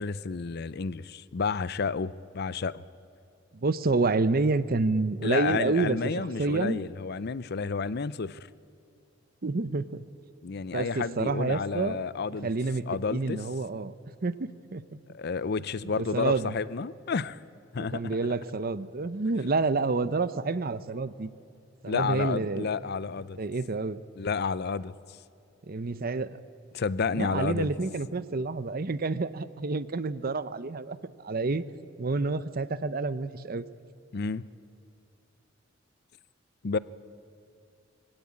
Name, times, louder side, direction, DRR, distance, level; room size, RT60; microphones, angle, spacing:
voice 1, 0.0-2.8 5.2-8.5 10.4-12.5 12.9-13.4 15.1-17.4 17.7-18.2 21.9-23.4 24.2-25.2 26.7-27.7 34.1-34.5 36.6-36.8, left 5 dB, 55° left, 18 dB, 0.5 m, -31 dB
voice 2, 3.6-6.1 6.4-6.8 9.4-10.0 10.7-12.0 12.4-13.9 14.2-14.8 16.0-16.5 17.8-21.3 21.8-22.7 23.4-24.0 25.7-26.4 27.1-31.0 31.2-31.6 32.0-33.6, right 3 dB, 50° right, 15 dB, 0.7 m, -28 dB
23.5 x 17.0 x 8.5 m, 2.7 s
head